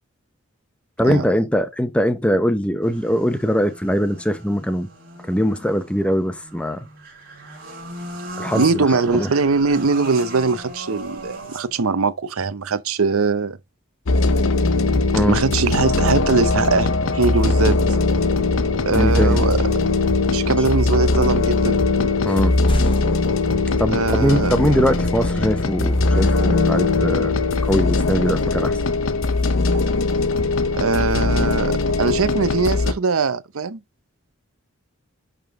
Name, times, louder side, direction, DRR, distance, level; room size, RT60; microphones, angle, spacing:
voice 1, 1.0-4.9 5.3-6.8 8.4-9.3 15.1-15.4 18.9-19.4 22.3-22.6 23.8-27.4 27.6-28.8, equal, 5° left, 0.8 m, -21 dB
sound 1, 2.8-11.9, right 2 dB, 45° right, 3.9 m, -37 dB
voice 2, 8.5-13.6 15.2-17.8 18.9-19.7 20.3-21.8 23.9-24.5 30.8-33.8, right 4 dB, 85° right, 0.7 m, -21 dB
sound 2, 13.7-13.9 14.3-16.4 18.5-18.7 19.5-20.3 21.2-21.3 21.7-24.5 25.0-25.1 27.7-29.9, equal, 25° left, 1.0 m, -37 dB
sound 3, 14.1-32.9, left 3 dB, 70° left, 0.8 m, -20 dB
11.0 x 3.7 x 3.7 m
head